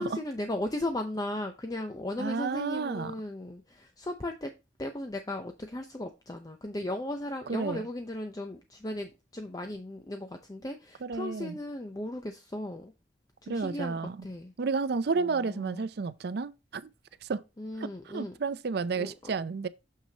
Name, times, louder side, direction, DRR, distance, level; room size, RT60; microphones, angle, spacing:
voice 1, 0.0-4.5 4.8-12.9 13.4-14.5 15.1-15.9 17.6-18.4 19.0-19.3, left 1 dB, 20° left, 0.6 m, -36 dB
voice 2, 2.2-3.1 7.5-7.8 11.0-11.6 13.5-14.2 14.6-16.9 17.2-17.4 17.8-19.7, right 4 dB, 60° right, 0.5 m, -31 dB
6.7 x 6.2 x 2.8 m
head